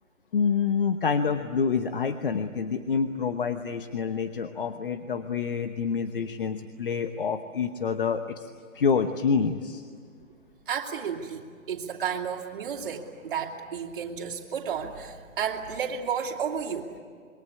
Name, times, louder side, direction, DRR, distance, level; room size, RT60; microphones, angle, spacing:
voice 1, 0.3-8.5 8.7-9.8, left 6 dB, 40° left, 8 dB, 1.0 m, -27 dB
voice 2, 10.7-16.9, right 7 dB, 40° right, -1 dB, 2.9 m, -32 dB
27.5 x 22.0 x 9.8 m, 2.1 s
hypercardioid pair, 175°, 40 cm